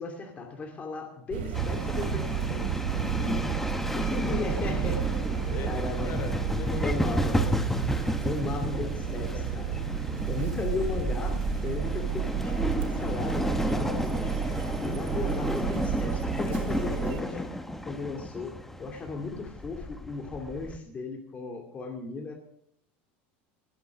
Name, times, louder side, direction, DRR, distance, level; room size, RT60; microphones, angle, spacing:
voice 1, 0.0-2.8 4.2-6.1 6.8-7.5 8.2-9.8 10.3-14.3 14.8-17.4 17.9-22.3, left 4 dB, 25° left, 1 dB, 2.5 m, -36 dB
sound 1, 1.3-17.2, right 10 dB, 85° right, 2.8 m, -32 dB
sound 2, 1.5-20.8, left 1 dB, 5° left, 1.0 m, -32 dB
voice 2, 2.9-4.9 5.4-7.6 8.5-9.5 16.6-17.5, left 6 dB, 45° left, 8 dB, 3.5 m, -40 dB
20.0 x 8.4 x 6.4 m, 0.69 s
supercardioid pair, 140°, 6 cm